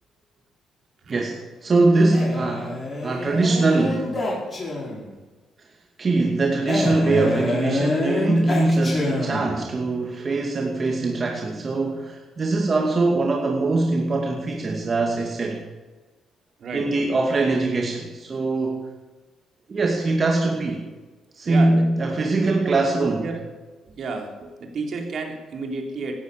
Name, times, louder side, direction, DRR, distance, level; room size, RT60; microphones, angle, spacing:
voice 1, 1.1-4.1 6.0-15.6 16.7-18.8 19.7-20.8 21.4-23.3, right 2 dB, 40° right, 1 dB, 2.4 m, -22 dB
Male speech man speaking, 2.1-5.1 6.7-9.7, left 2 dB, 30° left, 5.7 m, -26 dB
voice 2, 16.6-17.1 21.4-21.9 22.3-23.4 23.9-26.1, right 3 dB, 60° right, 2 dB, 3.6 m, -32 dB
17.5 x 11.5 x 7.0 m, 1.3 s
cardioid pair, 90°, 0 cm